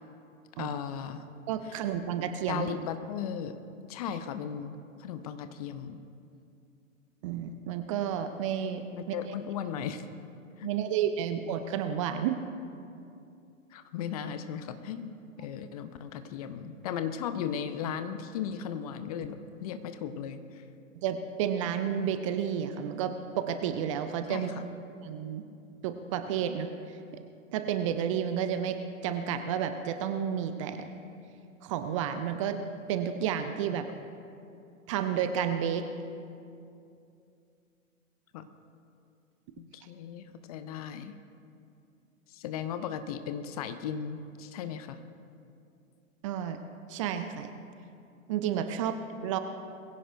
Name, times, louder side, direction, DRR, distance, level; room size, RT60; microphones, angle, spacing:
voice 1, 0.6-1.2 1.6-1.8 2.5-3.6 3.9-6.0 8.9-10.1 10.6-10.7 13.7-20.6 24.3-24.6 33.7-34.1 38.3-38.5 39.6-41.2 42.3-45.0, left 8 dB, 30° left, 10 dB, 0.6 m, -37 dB
voice 2, 1.5-2.7 7.2-9.1 10.6-12.4 21.0-24.5 25.0-25.4 25.8-26.7 27.5-28.8 29.0-30.9 31.6-32.6 32.9-33.9 34.9-35.8 46.2-46.6 46.9-47.5 48.3-49.4, right 9 dB, 25° right, 9 dB, 0.5 m, -31 dB
22.0 x 16.0 x 2.6 m, 2.6 s
figure-of-eight pair, 110°, 41 cm